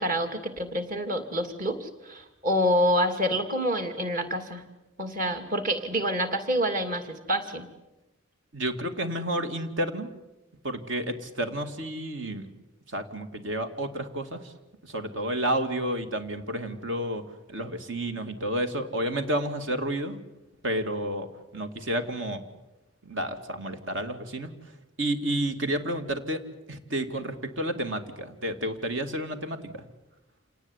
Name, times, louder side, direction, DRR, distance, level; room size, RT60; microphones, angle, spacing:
voice 1, 0.0-4.6 5.0-7.7, equal, 40° right, 8 dB, 2.8 m, -27 dB
voice 2, 8.5-10.1 10.6-12.5 12.9-14.5 14.8-17.2 17.5-20.2 20.6-21.3 21.5-22.4 23.0-24.5 25.0-26.4 26.7-29.8, right 1 dB, 65° right, 7 dB, 2.4 m, -30 dB
28.0 x 19.0 x 9.9 m, 1.0 s
head